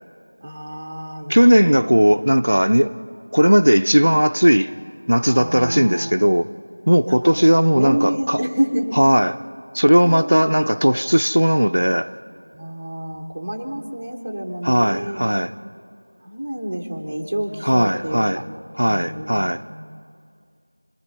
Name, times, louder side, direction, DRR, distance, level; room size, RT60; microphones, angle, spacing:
voice 1, 0.4-1.8 5.3-6.2 7.0-7.4 7.7-9.0 10.0-10.6 12.5-15.3 16.2-18.5 18.9-19.5, equal, 10° right, 0.8 m, -28 dB
voice 2, 1.3-2.9 3.3-4.7 5.1-6.5 6.9-8.4 9.0-9.4 9.7-12.1 14.6-15.5 17.6-18.4 18.8-19.6, equal, 60° right, 0.5 m, -17 dB
27.0 x 21.0 x 5.6 m
figure-of-eight pair, 180°, 0 cm